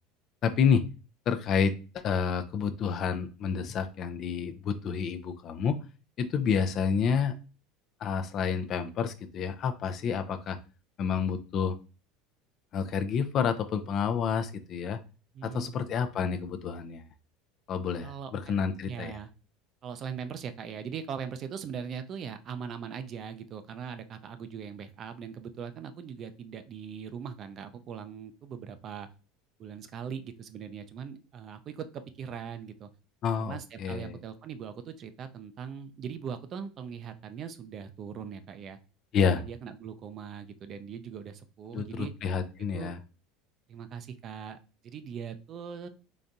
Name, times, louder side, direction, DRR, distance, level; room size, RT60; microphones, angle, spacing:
voice 1, 0.4-0.8 1.3-5.8 6.2-7.3 8.0-10.6 11.0-11.8 12.7-15.0 15.4-17.0 17.7-19.2 33.2-34.2 39.1-39.4 41.7-43.0, left 6 dB, 50° left, 8 dB, 0.5 m, -29 dB
voice 2, 15.3-15.7 18.0-18.3 18.9-19.3 19.8-29.1 29.6-32.9 33.4-38.8 39.4-42.1 42.7-42.9 43.7-44.6 44.8-45.9, right 7 dB, 45° right, 10 dB, 0.5 m, -40 dB
4.0 x 3.3 x 2.5 m, 0.34 s
hypercardioid pair, 85°, 0 cm